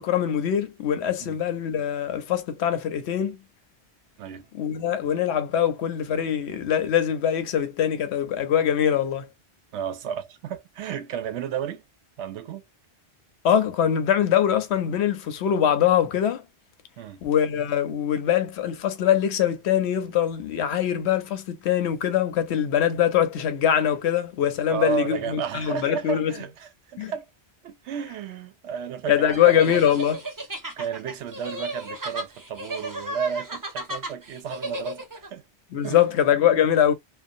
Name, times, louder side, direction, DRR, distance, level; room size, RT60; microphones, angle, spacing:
voice 1, 0.0-3.4 4.5-9.3 13.4-16.4 17.2-26.3 27.0-27.1 29.1-30.2 35.7-36.9, left 9 dB, 75° left, 0.8 m, -23 dB
voice 2, 9.7-11.8 12.2-12.6 17.0-17.2 24.7-27.3 27.6-29.7 30.7-35.4 35.8-36.0, right 8 dB, 80° right, 0.9 m, -32 dB
sound 1, 29.3-35.3, right 1 dB, 25° right, 0.4 m, -34 dB
2.6 x 2.2 x 2.5 m
omnidirectional pair, 1.2 m